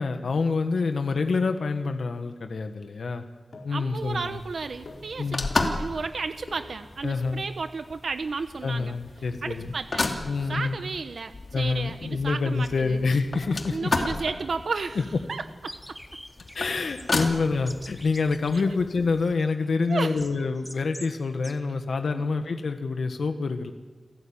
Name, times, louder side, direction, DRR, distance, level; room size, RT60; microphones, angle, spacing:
voice 1, 0.0-3.2 3.6-4.4 5.2-5.5 7.0-7.4 8.6-9.7 10.2-10.8 11.5-13.9 16.5-23.7, left 4 dB, 85° left, 6 dB, 1.6 m, -27 dB
sound 1, 3.5-3.9 4.6-5.2 6.4-6.8 7.5-9.9 10.5-10.9 12.0-12.4 13.2-13.3 13.5-13.8 14.9-15.5 15.8-15.9 16.1-16.2 16.6-17.0 17.3-18.4 18.8-19.2 19.6-20.7 21.0-21.1, left 2 dB, 70° left, 5.0 m, -44 dB
voice 2, 3.7-8.9 9.4-10.1 10.5-13.0 13.7-16.0 17.2-17.3 18.7-18.8 19.9-20.2 22.1-22.3, right 4 dB, 75° right, 9 dB, 1.0 m, -33 dB
sound 2, 4.0-19.3, left 3 dB, 50° left, 2.8 m, -34 dB
sound 3, 15.7-21.2 21.4-21.6, equal, 5° left, 1.4 m, -46 dB
29.5 x 18.0 x 8.9 m, 1.4 s
wide cardioid pair, 115°, 0 cm